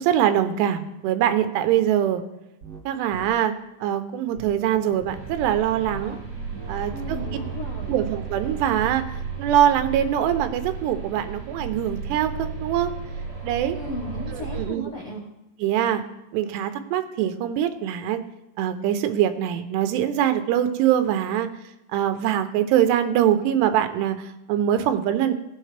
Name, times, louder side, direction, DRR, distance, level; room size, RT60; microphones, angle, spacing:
voice 1, 0.0-2.2 2.9-3.5 3.8-6.2 6.7-7.2 7.9-9.0 9.4-12.9 13.4-13.8 14.3-14.8 15.6-16.0 16.3-18.2 18.6-21.5 21.9-25.3, right 10 dB, 85° right, 9 dB, 2.9 m, -23 dB
sound 1, 2.6-2.8 3.1-3.3 4.4-5.1 5.8-6.2 6.5-9.0, right 4 dB, 65° right, 1.5 m, -42 dB
sound 2, 5.1-14.7, right 5 dB, 30° right, 3.8 m, -34 dB
voice 2, 6.9-8.0 13.7-15.2, left 1 dB, 75° left, -2 dB, 1.2 m, -35 dB
17.0 x 7.6 x 3.3 m, 0.94 s
omnidirectional pair, 4.9 m